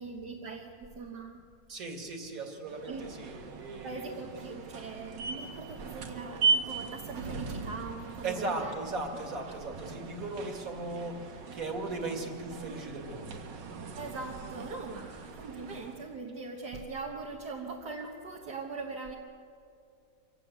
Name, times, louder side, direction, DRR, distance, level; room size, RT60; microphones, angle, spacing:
voice 1, 0.0-1.4 2.9-3.1 3.8-8.7 9.1-9.2 9.5-9.6 14.0-19.2, right 4 dB, 65° right, 0 dB, 2.0 m, -41 dB
voice 2, 1.7-2.9 3.2-4.1 8.2-13.4, right 2 dB, 50° right, 3 dB, 2.7 m, -37 dB
sound 1, 2.6-16.2, right 4 dB, 85° right, 2.1 m, -38 dB
25.5 x 17.0 x 8.2 m, 2.4 s
omnidirectional pair, 1.9 m